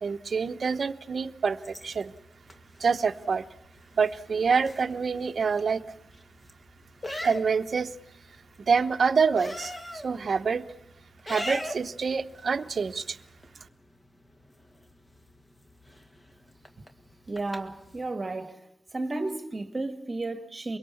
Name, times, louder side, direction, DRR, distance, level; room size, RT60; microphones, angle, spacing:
voice 1, 0.0-2.1 2.8-3.4 4.0-5.8 7.2-7.9 8.6-10.6 11.2-13.2, right 5 dB, 55° right, 0.9 m, -26 dB
sound 1, 1.6-18.1, left 1 dB, 20° left, 1.9 m, -43 dB
voice 2, 17.3-18.6 18.9-20.8, right 2 dB, 30° right, 1.6 m, -33 dB
24.0 x 23.0 x 7.1 m
wide cardioid pair, 115°, 0 cm